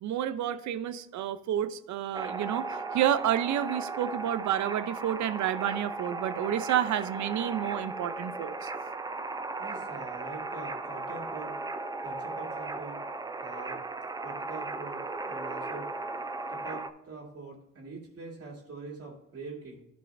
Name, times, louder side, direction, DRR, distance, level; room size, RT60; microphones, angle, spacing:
voice 1, 0.0-8.7, right 11 dB, 70° right, 14 dB, 0.6 m, -30 dB
sound 1, 2.1-16.9, right 3 dB, 15° right, 0.4 m, -36 dB
voice 2, 9.6-11.5 12.0-13.0 13.4-13.8 14.2-15.0 15.3-15.9 16.5-19.8, right 3 dB, 55° right, -3 dB, 2.2 m, -43 dB
11.0 x 5.5 x 2.6 m, 0.87 s
cardioid pair, 90°, 30 cm